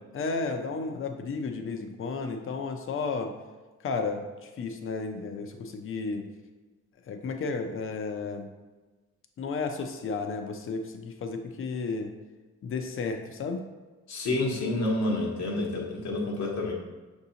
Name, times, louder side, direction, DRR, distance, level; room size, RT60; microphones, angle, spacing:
voice 1, 0.1-3.3 3.8-6.3 7.1-8.5 9.4-12.1 12.6-13.6, left 4 dB, 45° left, 5 dB, 0.6 m, -33 dB
voice 2, 14.1-16.7, left 2 dB, 65° left, -1 dB, 1.0 m, -29 dB
5.9 x 2.7 x 2.8 m, 1.2 s
cardioid pair, 90°, 30 cm